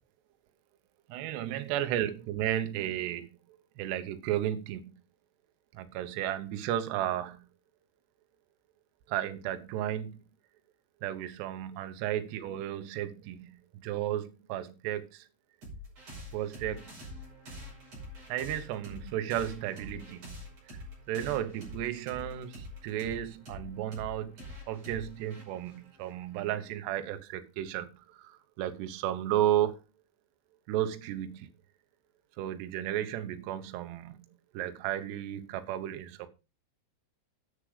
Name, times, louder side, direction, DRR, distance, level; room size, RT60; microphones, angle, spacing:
voice 1, 1.1-3.3 3.8-4.9 5.7-7.4 9.1-10.2 11.0-13.5 13.8-15.3 16.3-16.9 18.3-20.3 21.1-24.4 24.7-29.8 30.7-31.5 32.4-34.2 34.5-36.3, right 12 dB, 70° right, 2.8 m, -33 dB
sound 1, 15.6-26.7, left 1 dB, 30° right, 6.5 m, -46 dB
10.0 x 7.4 x 5.0 m
omnidirectional pair, 5.8 m